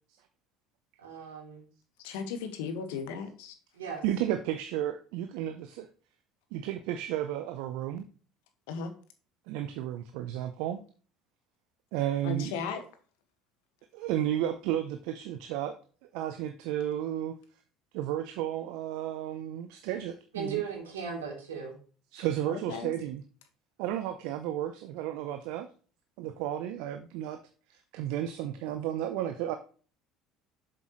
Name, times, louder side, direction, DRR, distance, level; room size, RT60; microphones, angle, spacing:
voice 1, 1.0-1.6 3.7-4.0 20.3-21.7, right 6 dB, 85° right, 0 dB, 3.1 m, -37 dB
voice 2, 2.0-3.5 8.7-8.9 12.2-12.8 22.5-22.9, left 6 dB, 75° left, 7 dB, 1.5 m, -36 dB
voice 3, 4.0-5.8 6.5-8.1 9.5-10.8 11.9-12.5 13.9-15.7 16.1-17.4 17.9-20.6 22.1-23.2 23.8-25.7 26.2-27.4 27.7-29.5, right 11 dB, 70° right, 9 dB, 0.7 m, -33 dB
7.7 x 7.3 x 3.1 m, 0.39 s
hypercardioid pair, 70°, 0 cm